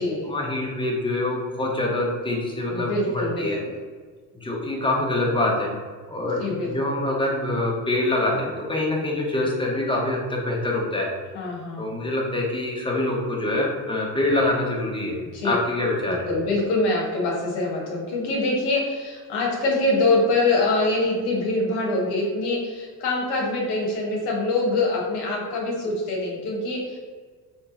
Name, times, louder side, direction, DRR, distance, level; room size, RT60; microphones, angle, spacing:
voice 1, 0.3-3.6 4.3-5.7 6.1-11.1 11.8-15.2 15.4-16.3, left 2 dB, 10° left, -2 dB, 1.0 m, -25 dB
voice 2, 2.7-3.7 6.4-6.7 11.3-11.9 15.3-15.5 16.0-27.0, left 2 dB, 55° left, -2 dB, 1.0 m, -24 dB
3.4 x 3.1 x 2.8 m, 1.5 s
hypercardioid pair, 60°, 48 cm